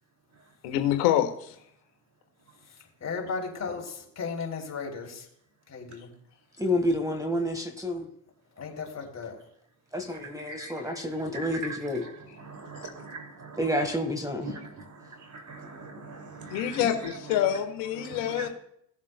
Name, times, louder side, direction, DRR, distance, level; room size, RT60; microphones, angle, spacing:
voice 1, 0.6-1.5 16.5-18.5, left 11 dB, 75° left, 1.4 m, -26 dB
voice 2, 3.0-5.2 5.7-6.1 8.6-9.4, left 5 dB, 35° left, 3.0 m, -35 dB
voice 3, 6.6-8.1 9.9-12.1 13.6-14.5, left 1 dB, 10° right, 1.5 m, -29 dB
voice 4, 10.2-10.7 11.3-11.4 12.4-13.6 14.4-14.7 15.5-16.9 18.1-18.5, right 2 dB, 40° right, 2.5 m, -41 dB
18.0 x 7.4 x 2.2 m
hypercardioid pair, 65°, 46 cm